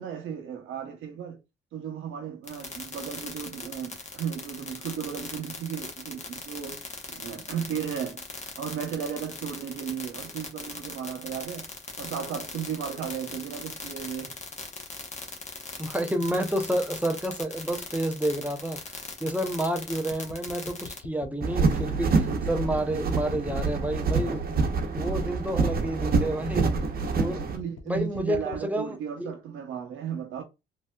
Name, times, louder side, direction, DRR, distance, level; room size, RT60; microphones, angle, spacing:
voice 1, 0.0-1.4 1.7-8.2 8.6-11.7 12.0-14.4 22.2-22.3 27.5-30.4, right 8 dB, 85° right, 0.8 m, -35 dB
sound 1, 2.5-21.0, left 4 dB, 35° left, 1.0 m, -39 dB
voice 2, 15.8-24.4 24.9-26.7 27.2-27.4 27.9-29.3, right 1 dB, 5° right, 0.6 m, -30 dB
sound 2, 20.1-28.7, left 7 dB, 80° left, 0.6 m, -42 dB
sound 3, 21.4-27.6, right 4 dB, 50° right, 0.9 m, -26 dB
3.2 x 2.7 x 2.3 m
cardioid pair, 90°, 20 cm